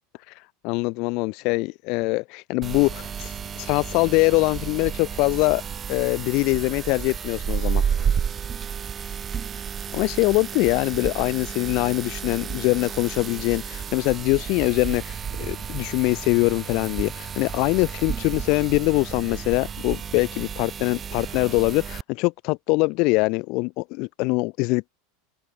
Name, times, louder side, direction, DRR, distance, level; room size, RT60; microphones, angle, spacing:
voice 1, 0.3-5.6 5.9-7.8 9.9-24.9, left 26 dB, 60° left, 0.8 m, -23 dB
sound 1, 2.6-22.0, right 7 dB, 30° right, 0.4 m, -31 dB
open air
hypercardioid pair, 105°, 0 cm